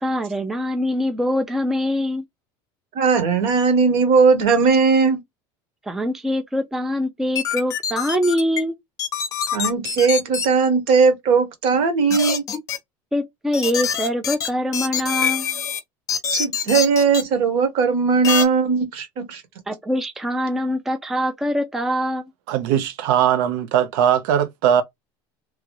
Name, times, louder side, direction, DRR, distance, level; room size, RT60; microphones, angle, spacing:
voice 1, 0.0-2.2 5.8-8.7 13.1-15.5 19.7-22.3, equal, 5° right, 0.4 m, -23 dB
voice 2, 2.9-5.2 9.5-12.4 16.3-19.4, right 5 dB, 60° right, 1.1 m, -18 dB
sound 1, 7.4-8.6 9.0-10.5 12.1-12.8 13.5-15.8 16.1-17.2 18.2-18.5, left 8 dB, 30° left, 0.6 m, -24 dB
voice 3, 22.5-24.8, right 9 dB, 80° right, 0.5 m, -19 dB
3.0 x 2.3 x 2.9 m
cardioid pair, 155°, 11 cm